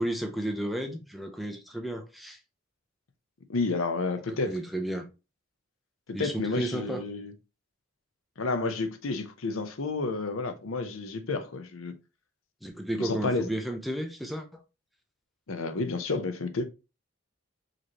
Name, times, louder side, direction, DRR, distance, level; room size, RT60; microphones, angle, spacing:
voice 1, 0.0-2.4 4.3-5.1 6.1-7.0 12.6-14.6, right 1 dB, ahead, 0.5 m, -33 dB
voice 2, 3.5-4.5 6.2-7.3 8.4-11.9 13.0-13.4 15.5-16.6, left 3 dB, 80° left, 0.6 m, -30 dB
4.9 x 3.1 x 2.9 m
head